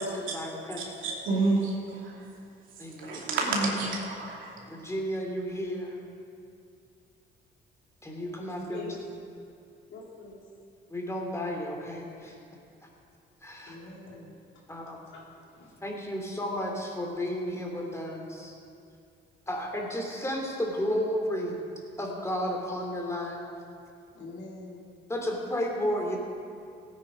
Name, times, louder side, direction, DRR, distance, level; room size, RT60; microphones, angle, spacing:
voice 1, 0.0-0.9 2.8-3.2 3.8-3.9 4.7-6.0 8.0-9.0 10.9-12.4 13.4-13.8 14.7-15.1 15.8-18.6 19.5-21.6 22.0-23.5 25.1-26.2, equal, 15° left, 0 dB, 3.0 m, -33 dB
voice 2, 0.8-2.3 3.0-4.5, right 3 dB, 80° right, -2 dB, 2.7 m, -29 dB
voice 3, 9.9-10.4 13.6-14.3 15.1-15.2 15.5-15.7 24.1-24.9, left 3 dB, 70° left, -3 dB, 3.4 m, -44 dB
17.0 x 9.2 x 5.1 m, 2.4 s
cardioid pair, 90°, 20 cm